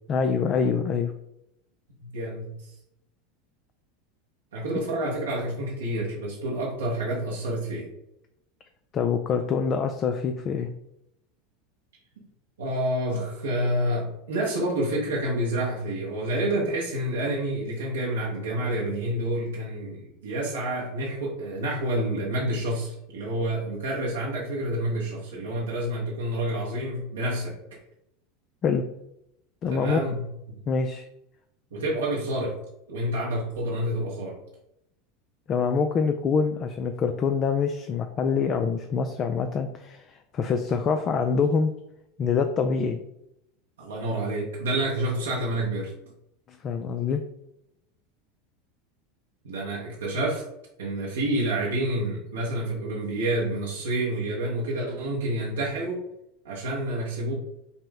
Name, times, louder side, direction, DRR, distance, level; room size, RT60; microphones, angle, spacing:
voice 1, 0.1-1.1 8.9-10.7 28.6-28.8 29.6-30.0 30.7-31.1 35.5-41.7 42.2-43.0 46.5-47.2, left 5 dB, 40° left, 7 dB, 0.3 m, -25 dB
voice 2, 2.0-2.6 4.5-7.9 12.6-27.6 29.7-30.3 31.7-32.6 32.9-34.4 43.8-45.9 49.4-50.4 50.8-56.0 56.4-57.3, right 1 dB, 90° right, -4 dB, 1.0 m, -28 dB
5.4 x 2.0 x 3.5 m, 0.81 s
hypercardioid pair, 95°, 0 cm